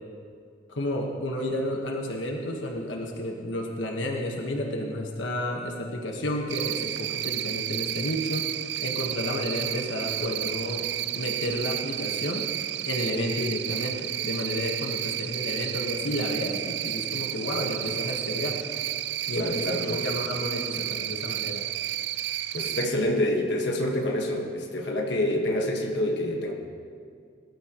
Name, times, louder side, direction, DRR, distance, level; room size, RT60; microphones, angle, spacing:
voice 1, 0.7-8.5 8.8-10.9 11.1-12.5 12.8-18.6 19.3-21.6, left 1 dB, 85° left, 1 dB, 1.4 m, -31 dB
Cricket, 6.5-22.9, right 13 dB, 65° right, 0.3 m, -31 dB
voice 2, 19.3-20.1 22.5-26.5, left 1 dB, 65° left, 0 dB, 1.5 m, -27 dB
20.5 x 12.5 x 3.0 m, 2.2 s
head